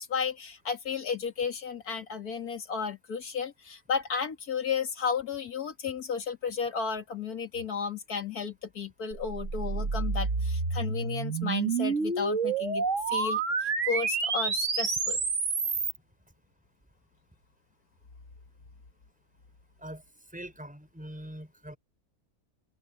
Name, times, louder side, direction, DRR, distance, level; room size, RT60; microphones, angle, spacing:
voice 1, 0.0-15.2, left 6 dB, 80° left, 2.6 m, -33 dB
sound 1, 9.1-16.0, right 4 dB, 55° right, 2.1 m, -29 dB
voice 2, 20.3-21.8, equal, 5° right, 5.4 m, -42 dB
open air
omnidirectional pair, 1.6 m